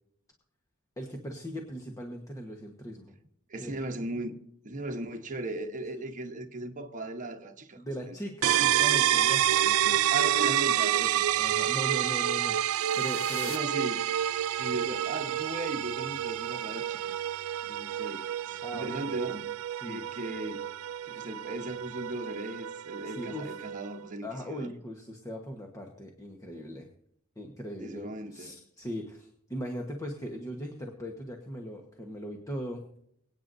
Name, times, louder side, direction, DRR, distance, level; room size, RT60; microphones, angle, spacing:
voice 1, 1.0-3.2 3.6-3.8 7.8-10.1 11.3-12.6 13.0-13.5 14.8-15.0 18.6-19.1 19.7-20.0 21.1-21.2 23.0-23.6 24.2-26.9 27.4-32.8, equal, 15° left, 1.2 m, -39 dB
voice 2, 3.5-4.4 4.6-8.2 10.1-11.2 13.4-14.1 14.6-17.1 17.7-19.5 19.8-20.6 21.0-24.7 27.8-28.6, right 2 dB, 35° right, 1.1 m, -37 dB
sound 1, 8.4-24.0, right 11 dB, 65° right, 0.3 m, -29 dB
sound 2, 12.4-14.6, left 8 dB, 65° left, 1.0 m, -46 dB
24.0 x 9.1 x 2.7 m
head